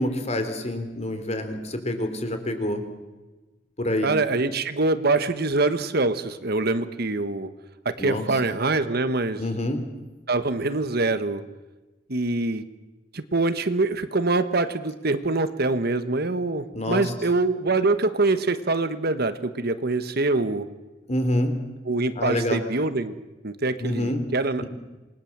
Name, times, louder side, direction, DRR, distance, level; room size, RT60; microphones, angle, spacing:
voice 1, 0.0-2.9 3.8-4.1 8.0-8.3 9.4-9.9 16.7-17.1 21.1-21.6 22.2-22.7 23.8-24.3 24.6-24.7, left 1 dB, 35° left, 7 dB, 3.6 m, -27 dB
voice 2, 4.0-7.5 7.8-9.4 10.3-11.4 12.1-12.6 13.1-20.7 21.9-23.1 23.4-24.6, right 3 dB, 55° right, 11 dB, 1.4 m, -24 dB
27.5 x 21.0 x 7.5 m, 1.1 s
head